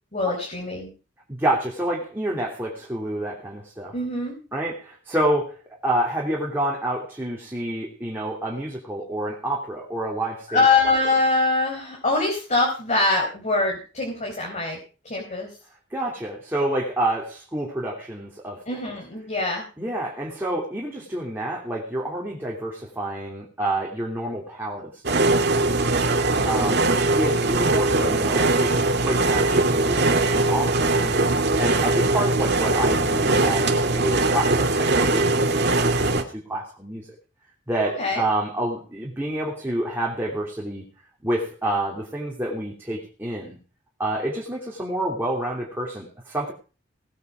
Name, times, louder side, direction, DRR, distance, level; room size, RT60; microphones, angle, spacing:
voice 1, 0.1-0.9 3.9-4.4 10.5-14.8 15.0-15.6 18.6-19.7 26.6-27.0 38.0-38.2, left 3 dB, 40° left, -1 dB, 4.7 m, -23 dB
voice 2, 1.3-3.9 4.5-10.6 15.9-18.6 19.8-25.9 26.4-26.8 27.2-31.2 31.6-37.1 37.7-40.8 41.2-43.6 44.0-46.5, right 1 dB, 10° right, -3 dB, 3.1 m, -28 dB
sound 1, 25.0-36.2, right 2 dB, 60° right, 2.3 m, -21 dB
18.5 x 9.4 x 4.9 m, 0.36 s
head